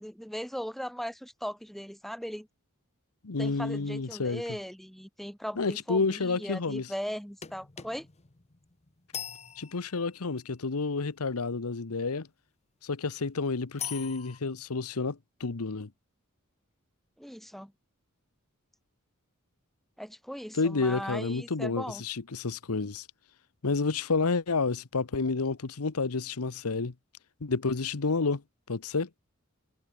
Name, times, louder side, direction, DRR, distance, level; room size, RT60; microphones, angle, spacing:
voice 1, 0.0-2.5 3.4-8.1 17.2-17.7 20.0-22.0, equal, ahead, 4.1 m, -38 dB
voice 2, 3.2-4.4 5.6-6.9 9.6-12.3 12.8-15.9 20.5-23.1 23.6-26.9 27.4-28.4 28.7-29.1, left 4 dB, 90° left, 1.0 m, -30 dB
sound 1, 7.4-10.3 13.8-14.4, left 9 dB, 30° left, 1.1 m, -41 dB
head